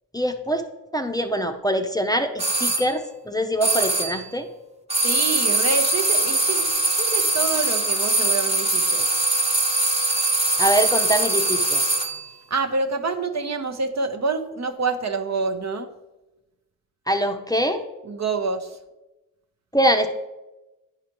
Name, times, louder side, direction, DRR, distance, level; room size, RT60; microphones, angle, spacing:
voice 1, 0.1-0.7 0.9-4.5 10.6-11.8 17.1-17.8 19.7-20.1, equal, 10° left, 5 dB, 0.6 m, -23 dB
sound 1, 2.4-2.9 3.6-4.2 4.9-12.3, right 2 dB, 20° right, 0.9 m, -22 dB
voice 2, 5.0-9.0 12.5-15.9 18.0-18.8, right 4 dB, 50° right, 6 dB, 0.7 m, -27 dB
9.6 x 4.8 x 3.0 m, 1.0 s
cardioid pair, 50°, 34 cm